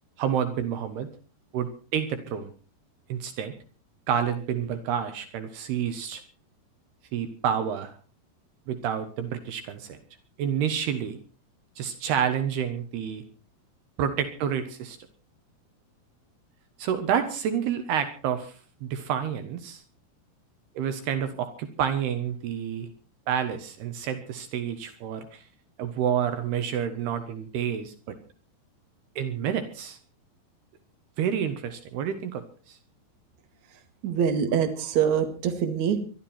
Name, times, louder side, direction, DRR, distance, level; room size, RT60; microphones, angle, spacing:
voice 1, 0.2-1.1 1.5-2.5 3.1-3.5 4.1-6.2 7.1-7.9 8.7-10.0 10.4-11.2 11.8-13.2 14.0-15.0 16.8-19.8 20.8-22.9 23.3-25.4 25.8-28.2 29.2-30.0 31.2-32.8, right 8 dB, 75° right, 9 dB, 3.3 m, -29 dB
voice 2, 34.0-36.0, right 8 dB, 50° right, 6 dB, 3.1 m, -24 dB
22.0 x 12.5 x 4.4 m, 0.37 s
omnidirectional pair, 4.8 m